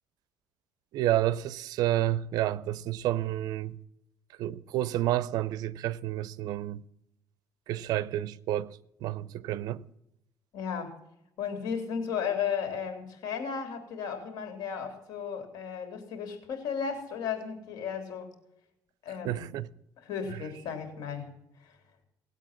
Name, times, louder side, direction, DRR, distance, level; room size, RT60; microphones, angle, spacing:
voice 1, 0.9-3.8 4.4-6.8 7.7-9.8 19.2-19.7, right 13 dB, 70° right, 0.6 m, -30 dB
voice 2, 10.5-10.9 11.4-18.3 19.0-19.5 20.0-21.3 21.6-21.7, left 7 dB, 75° left, 3.4 m, -34 dB
18.5 x 8.3 x 7.3 m
cardioid pair, 125°, 7 cm